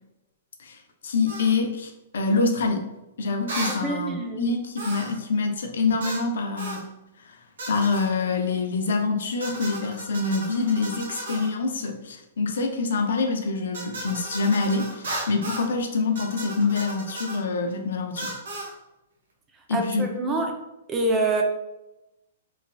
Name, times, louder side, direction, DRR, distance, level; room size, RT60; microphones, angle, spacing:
voice 1, 0.6-2.9 3.2-6.9 7.2-18.4 19.7-20.4, left 4 dB, 80° left, 5 dB, 0.4 m, -26 dB
sound 1, 1.3-1.5 3.5-3.8 4.8-5.2 6.0-6.3 6.6-6.8 7.6-8.1 9.4-11.5 13.7-15.7 16.1-17.4 18.2-18.7, right 2 dB, 85° right, 0.9 m, -35 dB
voice 2, 3.8-4.5 19.7-20.5 20.9-21.4, right 2 dB, 15° right, 2 dB, 0.4 m, -26 dB
3.1 x 2.4 x 2.2 m, 0.95 s
hypercardioid pair, 145°, 0 cm